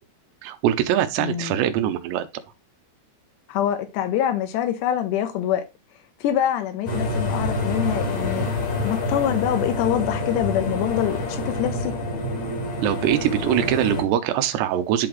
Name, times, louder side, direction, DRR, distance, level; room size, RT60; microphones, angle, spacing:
voice 1, 0.4-2.2 12.8-15.1, right 11 dB, 90° right, 2.9 m, -22 dB
voice 2, 1.2-1.6 3.5-5.6 6.2-8.5 8.8-11.9, left 11 dB, 85° left, 3.0 m, -25 dB
sound 1, 6.9-14.0, left 2 dB, 50° left, 2.9 m, -27 dB
11.5 x 3.9 x 3.0 m
omnidirectional pair, 4.8 m